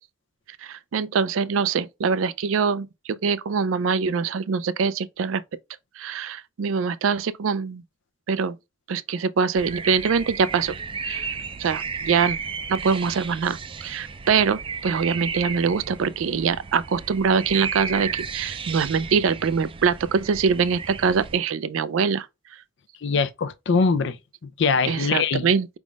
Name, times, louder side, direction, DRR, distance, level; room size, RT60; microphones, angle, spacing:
voice 1, 0.6-2.9 3.2-5.4 6.0-7.8 8.3-8.6 8.9-10.7 11.0-11.3 11.6-12.4 12.7-22.3 24.9-25.7, right 5 dB, 90° right, 0.4 m, -23 dB
sound 1, 9.5-21.4, right 5 dB, 25° right, 0.4 m, -34 dB
voice 2, 23.0-24.2 24.6-25.5, left 5 dB, 65° left, 0.5 m, -22 dB
5.1 x 3.5 x 2.3 m
head